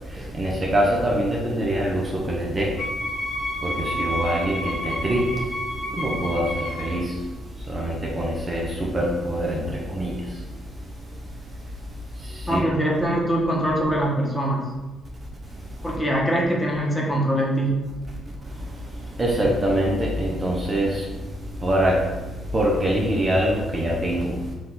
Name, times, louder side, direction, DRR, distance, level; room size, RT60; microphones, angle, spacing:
voice 1, 0.3-2.7 3.6-5.3 5.9-7.1 7.7-10.2 12.5-12.6 19.2-21.1 21.6-22.0 22.5-24.4, right 1 dB, 30° right, -2 dB, 0.8 m, -24 dB
Wind instrument woodwind instrument, 2.8-7.1, left 1 dB, 70° left, 1.0 m, -30 dB
voice 2, 12.5-14.6 15.8-17.8, right 1 dB, 10° left, -3 dB, 1.2 m, -23 dB
4.7 x 2.6 x 3.8 m, 1.2 s
cardioid pair, 90°, 0 cm